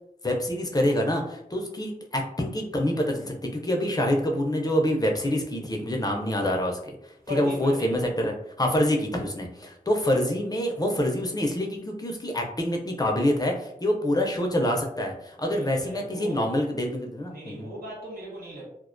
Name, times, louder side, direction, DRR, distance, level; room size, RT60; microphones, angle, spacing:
voice 1, 0.2-6.8 7.4-17.7, left 1 dB, 25° left, 1 dB, 0.4 m, -26 dB
voice 2, 7.2-7.9 15.4-16.6 17.3-18.7, equal, 90° right, -6 dB, 1.0 m, -37 dB
2.3 x 2.1 x 2.5 m, 0.78 s
wide cardioid pair, 80°, 15 cm